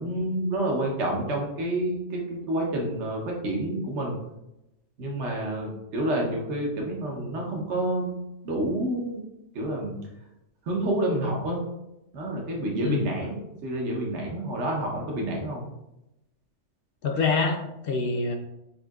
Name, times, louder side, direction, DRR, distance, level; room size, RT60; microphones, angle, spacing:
voice 1, 0.0-4.2 5.0-8.1 8.4-9.2 9.5-10.0 10.6-11.6 12.1-15.6, right 1 dB, 70° right, -1 dB, 1.3 m, -28 dB
voice 2, 12.8-13.1 17.0-18.4, left 4 dB, 60° left, 3 dB, 0.7 m, -26 dB
6.7 x 2.7 x 2.4 m, 0.89 s
omnidirectional pair, 1.2 m